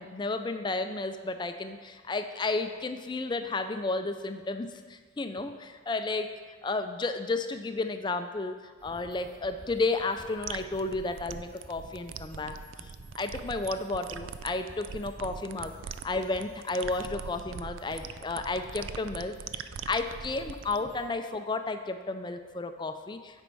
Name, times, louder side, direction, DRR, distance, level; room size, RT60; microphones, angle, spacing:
voice 1, 0.0-6.3 6.6-15.8 16.0-23.4, left 3 dB, 20° left, 8 dB, 0.4 m, -32 dB
sound 1, 8.8-21.0, left 1 dB, 5° left, 1.3 m, -52 dB
sound 2, 10.4-20.8, right 7 dB, 80° right, 0.3 m, -41 dB
9.2 x 4.5 x 5.3 m, 1.5 s
head